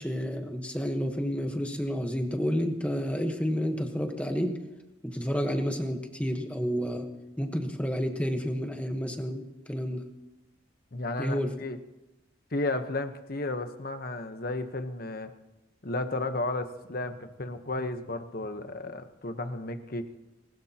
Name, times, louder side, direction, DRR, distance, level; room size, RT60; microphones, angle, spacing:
voice 1, 0.0-4.5 5.0-7.1 7.4-10.0 11.2-11.5, equal, 5° left, 4 dB, 1.2 m, -30 dB
voice 2, 10.9-11.8 12.5-15.3 15.8-20.1, left 2 dB, 45° left, 8 dB, 1.0 m, -33 dB
20.0 x 19.5 x 2.9 m, 0.97 s
head